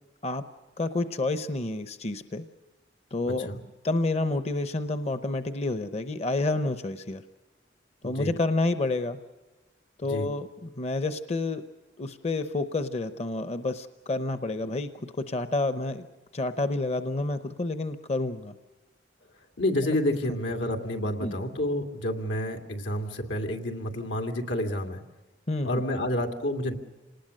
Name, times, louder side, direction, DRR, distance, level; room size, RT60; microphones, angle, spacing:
voice 1, 0.8-2.4 3.1-3.5 3.8-7.2 8.0-9.2 10.0-11.6 12.0-16.1 16.3-18.5 21.2-21.4 25.5-25.8, left 2 dB, 35° left, 10 dB, 0.7 m, -29 dB
voice 2, 3.2-3.6 8.0-8.3 10.0-10.3 19.6-25.0 25.6-26.8, left 1 dB, 90° left, 3 dB, 2.4 m, -29 dB
27.0 x 19.5 x 6.5 m, 1.2 s
head